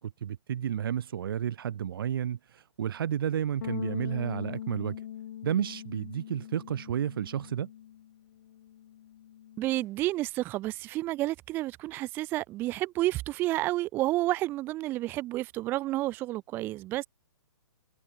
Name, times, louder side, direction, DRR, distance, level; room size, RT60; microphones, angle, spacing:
voice 1, 0.0-5.0 5.4-7.7, right 9 dB, 50° right, 2.4 m, -31 dB
Bass guitar, 3.6-9.9, left 11 dB, 45° left, 3.1 m, -42 dB
voice 2, 9.6-17.1, right 17 dB, 15° right, 0.8 m, -30 dB
hypercardioid pair, 170°, 15 cm